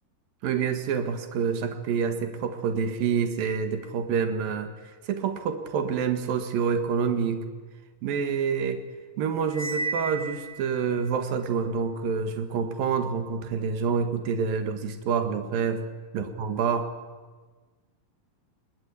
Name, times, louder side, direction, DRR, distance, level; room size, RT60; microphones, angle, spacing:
voice 1, 0.4-4.7 5.1-7.4 8.0-8.8 9.2-15.8 16.1-16.9, right 6 dB, 90° right, 8 dB, 3.5 m, -27 dB
Cymbal, 9.5-10.9, right 3 dB, 10° right, 2.4 m, -33 dB
27.0 x 21.0 x 9.7 m, 1.4 s
omnidirectional pair, 4.0 m